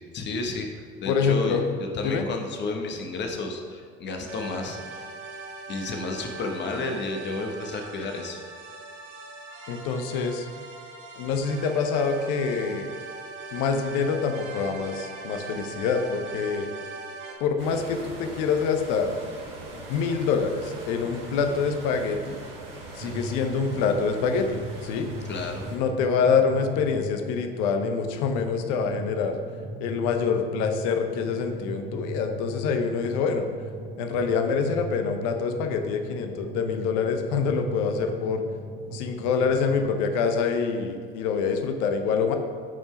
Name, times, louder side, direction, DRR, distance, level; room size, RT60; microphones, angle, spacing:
voice 1, 0.1-1.6 1.9-5.1 5.7-8.4 25.3-25.6, left 3 dB, 40° left, 3 dB, 1.1 m, -32 dB
voice 2, 1.1-1.6 2.0-2.3 9.7-10.5 11.2-12.9 13.5-16.7 17.4-19.2 19.7-22.4 22.9-25.1 25.7-29.4 29.8-33.5 34.0-38.4 38.9-42.4, left 5 dB, 60° left, 6 dB, 0.9 m, -26 dB
sound 1, 4.3-17.4, right 3 dB, 60° right, 1.3 m, -40 dB
sound 2, 17.6-25.8, right 2 dB, 75° right, 1.6 m, -41 dB
sound 3, 23.0-39.9, right 1 dB, 25° right, 1.1 m, -38 dB
6.2 x 4.5 x 5.7 m, 2.1 s
hypercardioid pair, 75°, 29 cm